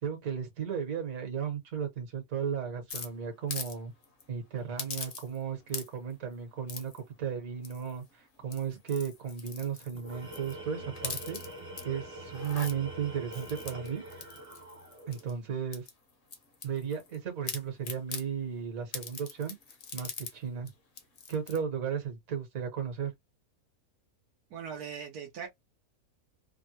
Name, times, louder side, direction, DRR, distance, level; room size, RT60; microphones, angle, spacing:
voice 1, 0.0-3.9 4.3-11.4 11.8-14.0 15.1-15.9 16.6-19.5 19.9-20.7 21.3-23.1, right 7 dB, 65° right, 1.6 m, -35 dB
sound 1, 2.9-3.8 4.0-4.2 4.8-5.4 5.7-6.1 6.7-7.0 7.6-8.0 8.4-10.6 10.9-11.8 12.3-12.7 13.3-15.3 15.7-17.2 17.5-18.3 18.9-20.3 20.7-20.8 21.0-21.6, left 5 dB, 45° left, 0.8 m, -41 dB
Tools, 9.9-15.3, right 1 dB, 30° right, 0.7 m, -44 dB
voice 2, 24.5-25.5, right 7 dB, 85° right, 1.3 m, -40 dB
3.4 x 2.2 x 2.7 m
omnidirectional pair, 1.6 m